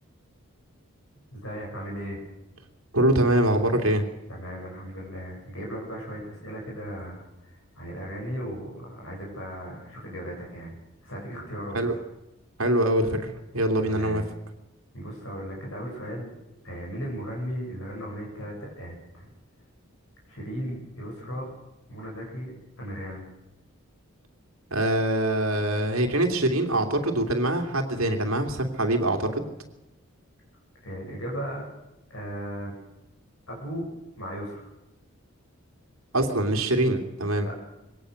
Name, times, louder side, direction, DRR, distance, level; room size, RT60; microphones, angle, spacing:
voice 1, 1.3-2.2 4.3-7.2 7.7-10.7 11.0-12.0 13.8-14.2 14.9-16.4 16.6-19.3 20.3-21.5 21.9-23.3 30.8-31.7 32.1-32.7 33.5-33.9 34.2-34.7 37.4-37.5, equal, 70° left, -2 dB, 7.8 m, -36 dB
voice 2, 2.9-4.0 11.7-11.9 12.6-14.2 24.7-29.5 36.1-37.5, right 1 dB, 75° right, 5 dB, 2.8 m, -24 dB
22.5 x 18.0 x 6.6 m, 0.96 s
head